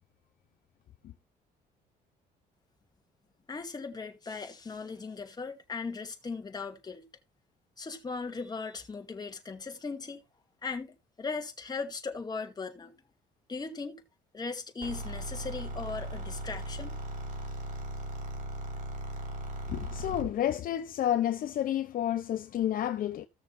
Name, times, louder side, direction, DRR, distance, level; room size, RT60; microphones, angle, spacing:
voice 1, 3.5-7.1 7.8-10.2 10.6-12.9 13.5-14.0 14.3-17.0, left 4 dB, 25° left, 2.3 m, -38 dB
sound 1, 14.8-20.4, right 1 dB, 45° right, 4.0 m, -38 dB
voice 2, 19.7-23.3, left 11 dB, 55° left, 0.8 m, -30 dB
16.0 x 6.7 x 2.7 m
cardioid pair, 110°, 17 cm